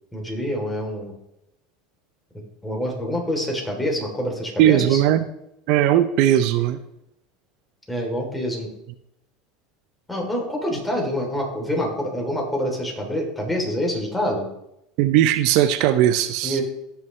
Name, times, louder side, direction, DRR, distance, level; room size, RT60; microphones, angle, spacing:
voice 1, 0.1-1.1 2.6-5.0 7.9-8.7 10.1-14.5 16.4-16.6, equal, 10° left, 0 dB, 3.3 m, -26 dB
voice 2, 4.6-5.3 5.7-6.8 15.0-16.6, right 12 dB, 65° right, 11 dB, 0.5 m, -18 dB
16.5 x 5.9 x 3.2 m, 0.81 s
supercardioid pair, 105°, 0 cm